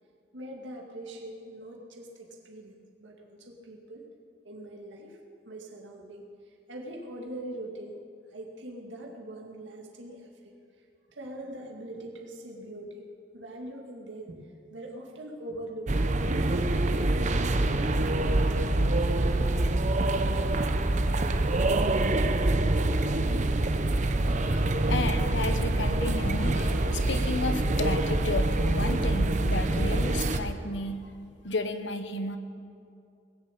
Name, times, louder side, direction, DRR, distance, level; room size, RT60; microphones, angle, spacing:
voice 1, 0.3-2.7 3.0-4.0 4.4-5.2 5.5-6.2 6.7-8.0 8.3-10.5 11.1-14.4 14.7-16.5, right 1 dB, 80° right, 0 dB, 2.3 m, -42 dB
sound 1, 15.9-30.4, right 2 dB, 40° right, 0.7 m, -25 dB
voice 2, 24.4-31.1 31.4-32.4, left 2 dB, 75° left, 9 dB, 1.1 m, -33 dB
20.0 x 7.3 x 8.5 m, 2.4 s
head